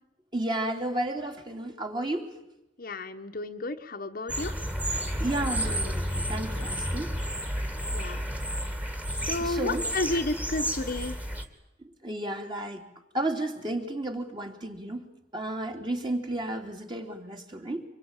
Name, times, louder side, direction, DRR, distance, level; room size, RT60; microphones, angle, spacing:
voice 1, 0.3-2.3 5.2-7.1 9.4-9.8 12.0-12.8 13.1-15.1 15.3-17.8, right 1 dB, 25° right, 3 dB, 3.1 m, -32 dB
voice 2, 2.8-4.5 7.9-8.2 9.2-11.2, left 2 dB, 55° left, 6 dB, 1.2 m, -31 dB
sound 1, 4.3-11.4, equal, 10° right, 2.3 m, -31 dB
25.5 x 21.5 x 9.0 m, 0.89 s
head